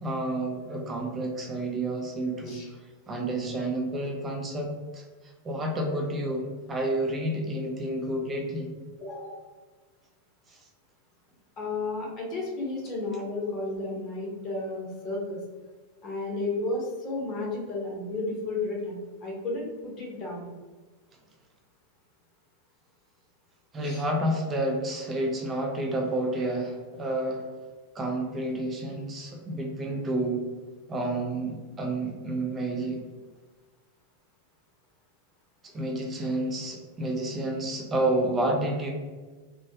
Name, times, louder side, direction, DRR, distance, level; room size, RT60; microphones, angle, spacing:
voice 1, 0.0-2.6 3.1-5.0 5.4-8.7 23.7-27.4 27.9-30.4 30.9-33.0 35.7-38.9, right 1 dB, 20° right, 1 dB, 0.6 m, -30 dB
voice 2, 9.0-9.4 11.6-15.4 16.0-20.5 23.8-24.0, left 2 dB, 30° left, -2 dB, 0.9 m, -33 dB
3.0 x 2.2 x 2.8 m, 1.4 s
figure-of-eight pair, 90°, 0 cm